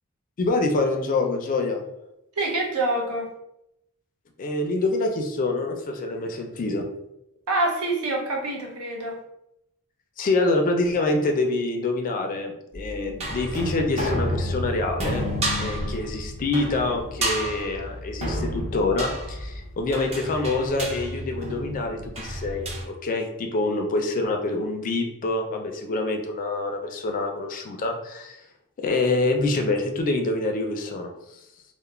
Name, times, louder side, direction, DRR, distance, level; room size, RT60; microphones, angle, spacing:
voice 1, 0.4-1.8 4.4-6.9 10.2-15.2 15.6-22.7 23.0-28.4 28.8-31.1, left 2 dB, 35° left, 3 dB, 0.3 m, -26 dB
voice 2, 2.4-3.3 7.5-9.2, right 2 dB, 75° right, 0 dB, 0.7 m, -26 dB
sound 1, 12.7-22.8, equal, 30° right, 0.5 m, -30 dB
2.3 x 2.1 x 3.0 m, 0.84 s
head